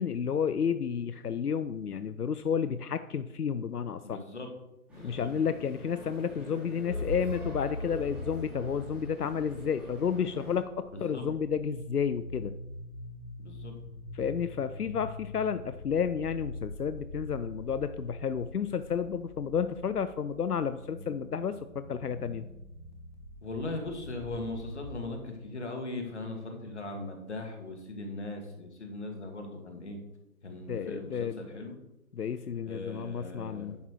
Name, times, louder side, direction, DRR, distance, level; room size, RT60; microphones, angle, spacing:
voice 1, 0.0-4.2 5.0-12.5 14.1-22.5 30.7-31.4 32.1-33.8, left 7 dB, 85° left, 12 dB, 0.6 m, -31 dB
voice 2, 4.0-4.5 4.9-5.3 10.9-11.3 13.4-13.7 23.4-30.0 30.4-31.8 32.6-33.8, left 2 dB, 50° left, 3 dB, 1.9 m, -39 dB
sound 1, 4.9-10.6, equal, 5° right, 1.7 m, -46 dB
sound 2, 6.9-25.1, left 2 dB, 30° right, 1.4 m, -43 dB
10.5 x 6.9 x 3.1 m, 0.92 s
figure-of-eight pair, 150°, 45 cm